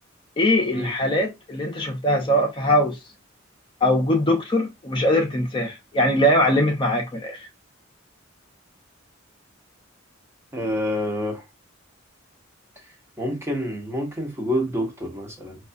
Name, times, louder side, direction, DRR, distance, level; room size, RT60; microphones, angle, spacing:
voice 1, 0.4-3.0 3.8-7.5, left 1 dB, 25° left, 0.6 m, -21 dB
voice 2, 10.5-11.4 13.2-15.6, equal, 15° right, 0.8 m, -27 dB
4.6 x 2.4 x 2.5 m
head